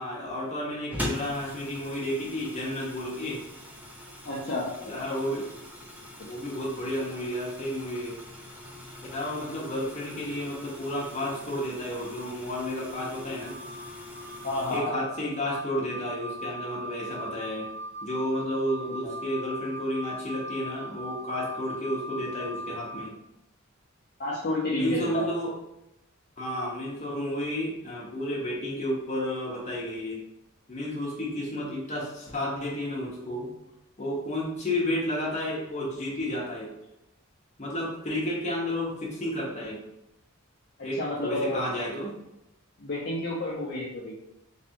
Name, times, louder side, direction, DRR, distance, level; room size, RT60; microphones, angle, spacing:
voice 1, 0.0-3.4 4.8-5.5 6.2-8.2 9.1-13.6 14.7-17.6 18.0-23.1 24.8-25.5 26.4-30.2 30.7-33.5 34.0-36.7 37.6-39.8 40.8-42.2, left 1 dB, 30° left, -4 dB, 1.0 m, -31 dB
sound 1, 0.9-14.8, left 1 dB, 10° right, 0.5 m, -42 dB
voice 2, 4.2-4.7 6.2-6.3 14.4-15.0 18.8-19.1 24.2-25.2 40.8-41.6 42.8-44.1, left 2 dB, 50° left, -6 dB, 0.6 m, -30 dB
Wind instrument woodwind instrument, 13.4-23.1, right 1 dB, 55° right, 0.7 m, -40 dB
3.3 x 3.2 x 2.9 m, 0.86 s
head